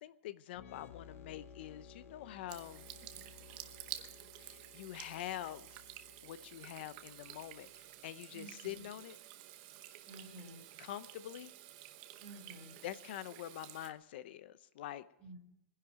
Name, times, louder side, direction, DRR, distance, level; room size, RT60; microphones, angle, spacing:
voice 1, 0.0-2.9 4.4-5.8 6.2-9.2 10.8-11.5 12.8-15.1, left 13 dB, 45° left, 15 dB, 0.7 m, -45 dB
sound 1, 0.5-8.1, left 6 dB, 80° left, 1.3 m, -58 dB
Water tap faucet / Sink (filling or washing), 2.5-13.9, right 13 dB, 35° right, 0.9 m, -51 dB
voice 2, 8.3-8.8 10.1-10.7 12.2-12.8 15.2-15.4, right 2 dB, 10° left, -1 dB, 4.5 m, -52 dB
21.5 x 10.5 x 4.9 m, 0.89 s
supercardioid pair, 175°, 8 cm